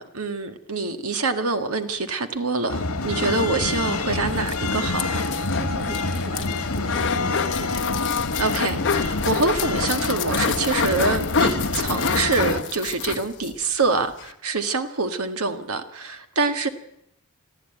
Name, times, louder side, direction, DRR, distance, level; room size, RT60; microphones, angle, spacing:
voice 1, 0.0-5.3 8.4-16.7, right 3 dB, 70° right, 1.8 m, -25 dB
sound 1, 2.7-12.6, left 3 dB, 70° left, 2.4 m, -27 dB
voice 2, 3.2-3.5 5.5-7.9, right 1 dB, 30° right, 3.3 m, -39 dB
sound 2, 4.2-13.5 13.9-14.0 14.2-14.3, left 6 dB, 55° left, 1.4 m, -28 dB
22.5 x 14.0 x 9.1 m
head